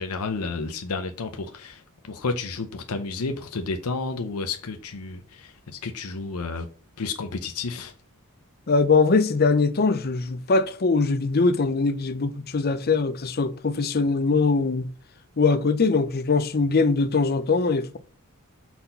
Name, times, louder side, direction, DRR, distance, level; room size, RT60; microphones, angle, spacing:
voice 1, 0.0-1.8 2.1-6.7 7.0-7.9, left 3 dB, 80° left, 0.7 m, -31 dB
voice 2, 8.7-14.9 15.4-18.0, left 4 dB, 45° left, 0.6 m, -22 dB
6.0 x 4.2 x 5.5 m
head